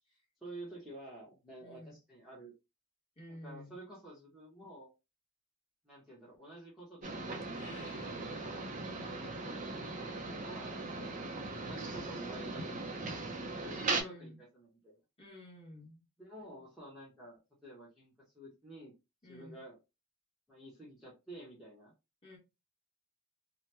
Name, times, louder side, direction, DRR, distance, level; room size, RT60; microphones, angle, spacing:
voice 1, 0.1-2.5 3.3-4.9 5.8-7.2 7.9-8.7 9.0-11.1 11.6-15.0 16.2-18.9 19.3-19.8 20.5-21.9, right 1 dB, ahead, -7 dB, 0.8 m, -51 dB
voice 2, 1.6-1.9 3.2-3.8 13.9-14.4 15.2-16.0 19.2-19.6 22.2-22.4, left 1 dB, 25° left, -2 dB, 1.2 m, -51 dB
sound 1, 7.0-14.0, right 3 dB, 35° right, 0.5 m, -39 dB
sound 2, 7.4-9.0, left 5 dB, 55° left, 0.6 m, -57 dB
2.8 x 2.1 x 3.2 m, 0.26 s
head